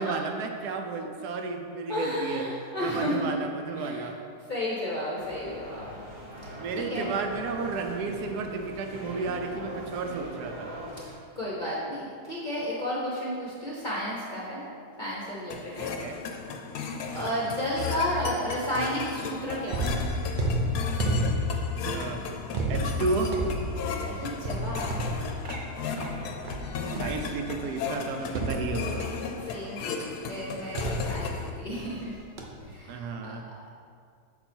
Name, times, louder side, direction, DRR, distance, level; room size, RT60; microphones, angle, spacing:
voice 1, 0.0-2.4 2.8-4.1 6.6-10.7 15.8-16.2 17.1-17.5 21.9-22.2 22.7-23.3 27.0-29.1 32.9-33.4, right 4 dB, 75° right, 4 dB, 1.2 m, -32 dB
voice 2, 1.9-3.3 3.8-4.1 4.5-5.9 6.4-7.1 11.4-14.6 15.0-15.9 17.1-19.9 24.0-24.9 29.1-32.3 32.7-33.4, equal, 35° left, -7 dB, 0.8 m, -32 dB
sound 1, 5.2-11.1, equal, 20° right, 0.8 m, -42 dB
sound 2, 15.5-31.5, left 5 dB, 75° left, 1.1 m, -36 dB
sound 3, 19.7-27.6 28.3-29.3 30.8-32.0 32.4-32.7, equal, 90° right, 0.4 m, -31 dB
6.8 x 4.1 x 4.4 m, 2.2 s
omnidirectional pair, 1.8 m